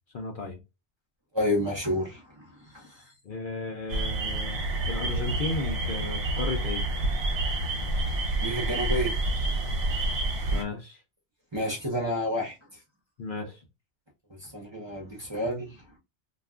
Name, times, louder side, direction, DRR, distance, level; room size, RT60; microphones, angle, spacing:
voice 1, 0.1-0.6 3.2-6.8 10.5-11.0 13.2-13.6, left 3 dB, 55° left, 0.7 m, -34 dB
voice 2, 1.3-3.1 8.4-9.4 11.5-12.8 14.3-15.8, left 1 dB, 30° right, 0.7 m, -30 dB
sound 1, 3.9-10.6, right 2 dB, 60° right, 0.9 m, -28 dB
2.3 x 2.2 x 3.5 m
omnidirectional pair, 1.1 m